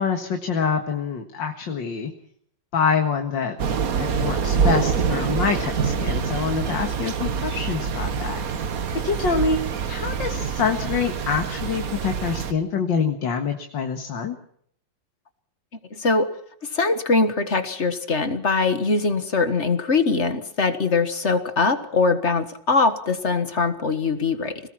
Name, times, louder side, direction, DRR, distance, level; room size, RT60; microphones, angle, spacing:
voice 1, 0.0-2.1 2.7-3.6 4.0-8.4 9.0-9.6 9.9-14.4, left 5 dB, 70° left, 5 dB, 2.4 m, -25 dB
Thunder / Rain, 3.6-12.5, right 6 dB, 50° right, 1.5 m, -25 dB
voice 2, 15.9-16.3 16.7-24.6, left 4 dB, 40° left, 10 dB, 1.8 m, -22 dB
26.0 x 19.0 x 5.9 m, 0.64 s
omnidirectional pair, 2.1 m